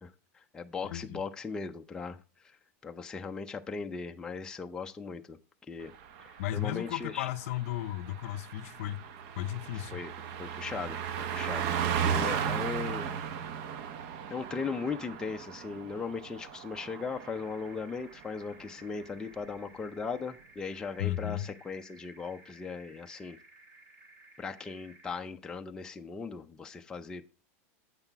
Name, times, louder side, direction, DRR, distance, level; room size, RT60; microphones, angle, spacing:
voice 1, 0.0-2.2 2.8-5.4 5.7-5.9 6.2-7.3 9.7-10.1 10.4-11.0 11.3-13.1 14.3-23.4 24.4-27.4, left 5 dB, 10° left, 0.4 m, -38 dB
voice 2, 0.8-1.2 6.4-9.0 9.4-10.0 21.0-21.5, left 14 dB, 65° left, 0.5 m, -34 dB
Car passing by, 5.9-17.8 18.1-18.4, right 8 dB, 50° right, 0.7 m, -36 dB
sound 1, 17.0-25.2, right 2 dB, 25° right, 1.5 m, -57 dB
8.1 x 5.8 x 4.5 m
supercardioid pair, 155°, 8 cm